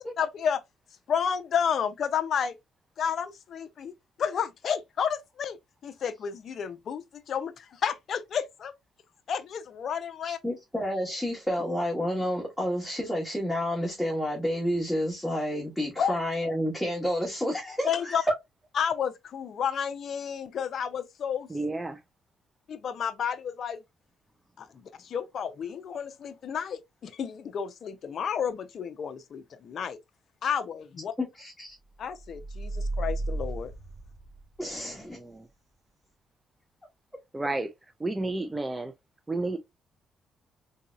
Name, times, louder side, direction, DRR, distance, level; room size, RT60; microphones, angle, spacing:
voice 1, 0.2-0.6 1.1-2.6 3.0-3.9 4.2-5.6 5.8-8.7 9.3-10.4 16.0-16.1 17.8-18.2 18.8-21.5 22.7-23.8 24.6-30.0 30.4-31.1 32.0-33.7, left 7 dB, 60° left, 0.5 m, -31 dB
voice 2, 10.2-18.2 31.2-31.8 34.6-35.2, equal, 5° left, 1.5 m, -30 dB
voice 3, 21.5-22.0 34.7-35.5 37.3-38.9 39.3-39.6, right 2 dB, 15° right, 0.4 m, -32 dB
sound 1, 32.1-34.8, right 2 dB, 45° right, 1.4 m, -34 dB
3.8 x 2.8 x 2.4 m
cardioid pair, 90°, 0 cm